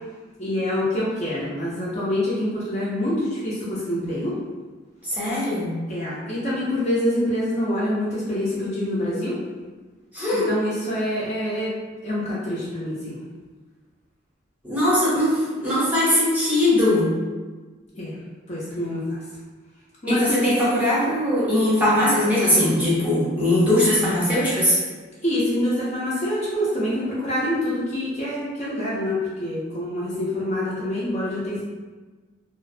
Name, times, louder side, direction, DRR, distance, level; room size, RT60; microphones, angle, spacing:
voice 1, 0.4-4.3 5.9-9.4 10.5-11.7 12.0-13.2 17.9-18.2 18.5-19.2 20.0-20.8 25.2-31.6, left 1 dB, 35° left, -8 dB, 0.5 m, -26 dB
voice 2, 5.1-5.7 10.1-10.5 14.6-17.1 20.1-24.8, left 1 dB, 10° right, -9 dB, 0.7 m, -20 dB
2.4 x 2.0 x 2.5 m, 1.3 s
head